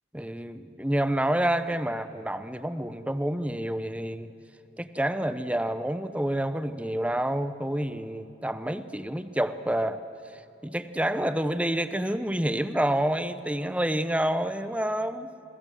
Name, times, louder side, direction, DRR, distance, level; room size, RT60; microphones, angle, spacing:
voice 1, 0.1-4.3 4.8-10.0 10.6-15.3, right 1 dB, 5° right, 11 dB, 0.9 m, -28 dB
28.0 x 22.0 x 7.7 m, 2.9 s
head